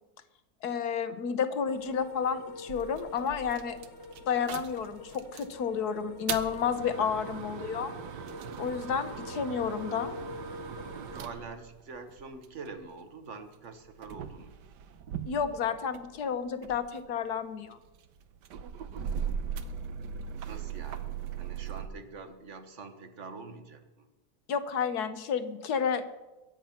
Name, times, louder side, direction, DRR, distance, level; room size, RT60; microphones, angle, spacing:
voice 1, 0.6-3.8 4.3-7.9 8.6-10.2 15.2-17.8 24.5-26.2, left 7 dB, 65° left, 11 dB, 1.4 m, -31 dB
sound 1, 1.6-11.2, left 3 dB, 45° left, 1.0 m, -46 dB
sound 2, 2.7-5.6 6.0-12.8 13.5-16.2 16.5-21.9, right 8 dB, 70° right, 1.4 m, -39 dB
voice 2, 11.1-14.5 20.4-24.1, right 4 dB, 45° right, 9 dB, 1.5 m, -45 dB
22.0 x 8.9 x 5.8 m, 1.1 s
omnidirectional pair, 1.9 m